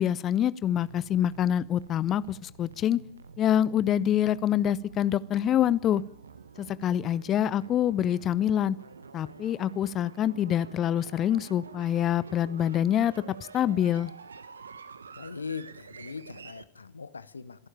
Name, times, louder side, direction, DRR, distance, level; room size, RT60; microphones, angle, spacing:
voice 1, 0.0-3.0 3.4-6.0 6.6-8.8 9.1-13.1 13.5-14.1, left 10 dB, 30° left, 19 dB, 0.8 m, -26 dB
sound 1, 0.8-16.6, right 5 dB, 70° right, 1.2 m, -48 dB
voice 2, 15.2-17.7, left 5 dB, 75° left, 16 dB, 1.0 m, -40 dB
26.5 x 11.5 x 8.8 m, 0.63 s
figure-of-eight pair, 90°, 0 cm